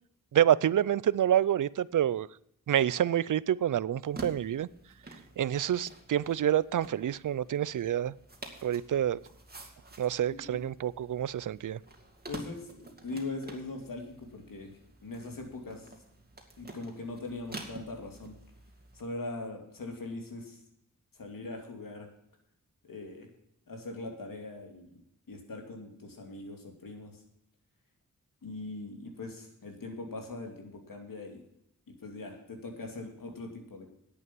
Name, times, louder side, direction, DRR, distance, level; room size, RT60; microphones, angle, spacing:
voice 1, 0.3-2.3 2.7-4.7 5.4-8.1 8.6-9.2 10.0-11.8, right 10 dB, 70° right, 21 dB, 0.5 m, -27 dB
sound 1, 4.0-19.0, right 2 dB, 30° right, 2.3 m, -49 dB
voice 2, 12.3-14.7 15.0-15.9 16.6-18.3 18.9-20.6 21.1-22.1 22.8-23.3 23.7-25.0 25.3-27.2 28.4-31.4 32.0-33.9, left 2 dB, 85° left, 2 dB, 2.7 m, -41 dB
11.0 x 8.4 x 6.1 m, 0.76 s
wide cardioid pair, 75°, 32 cm